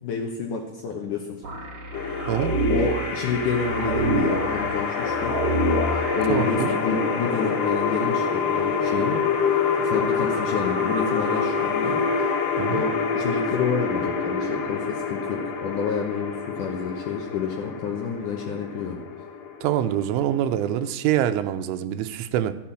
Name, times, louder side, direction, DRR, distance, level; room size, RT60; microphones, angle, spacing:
voice 1, 0.0-1.4 2.7-5.4 5.9-9.2 9.8-12.0 12.7-19.0, left 5 dB, 85° left, 1 dB, 1.7 m, -29 dB
sound 1, 1.4-6.4, right 1 dB, 40° right, 2.0 m, -27 dB
sound 2, 1.9-20.9, left 5 dB, 55° left, 2.8 m, -27 dB
voice 2, 2.3-2.6 6.3-6.7 12.6-12.8 19.6-22.5, right 11 dB, 85° right, 9 dB, 3.2 m, -25 dB
14.0 x 10.5 x 7.5 m, 0.95 s
omnidirectional pair, 5.5 m